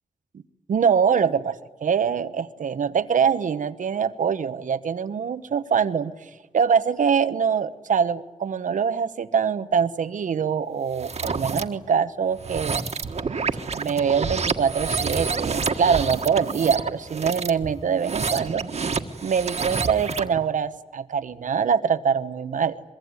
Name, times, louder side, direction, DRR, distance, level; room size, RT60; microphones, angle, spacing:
voice 1, 0.7-6.1 6.5-12.9 13.7-18.6 19.2-22.8, right 7 dB, 85° right, 13 dB, 1.0 m, -24 dB
sound 1, 10.9-11.6 12.3-20.4, right 4 dB, 60° right, 1.6 m, -28 dB
24.0 x 23.0 x 9.7 m, 1.2 s
wide cardioid pair, 110°, 13 cm